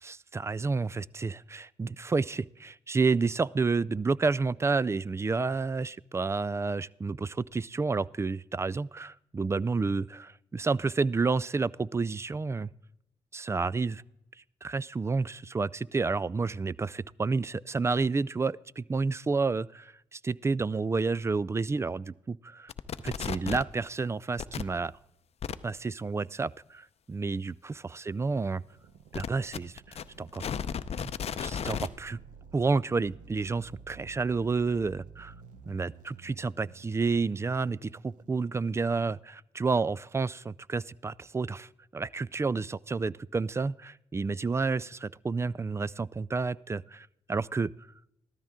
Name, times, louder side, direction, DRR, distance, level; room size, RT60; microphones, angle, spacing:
voice 1, 0.0-12.7 13.3-14.0 14.6-22.7 23.0-24.9 25.6-28.6 29.1-30.5 31.0-31.1 31.4-32.2 32.5-35.3 35.7-47.7, right 4 dB, 20° right, 23 dB, 0.3 m, -30 dB
sound 1, 22.7-23.7 24.4-24.6 25.4-25.6 29.1-31.9, left 7 dB, 50° left, 0.6 m, -34 dB
sound 2, 28.7-39.2, right 6 dB, 80° right, 0.9 m, -53 dB
14.0 x 13.0 x 3.6 m, 0.82 s
cardioid pair, 65°, 13 cm